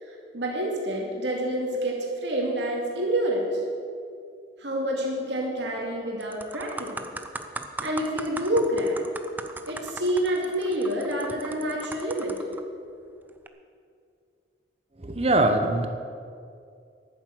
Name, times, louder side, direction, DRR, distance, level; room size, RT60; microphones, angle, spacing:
voice 1, 0.0-3.6 4.6-7.1 7.8-9.1 9.7-12.4, right 1 dB, 75° right, -2 dB, 2.4 m, -28 dB
sound 1, 5.6-5.8 6.2-12.6 13.3-13.5, right 2 dB, 10° right, 0.6 m, -38 dB
voice 2, 15.0-15.9, right 2 dB, 35° right, 6 dB, 1.0 m, -22 dB
11.0 x 9.4 x 7.9 m, 2.3 s
head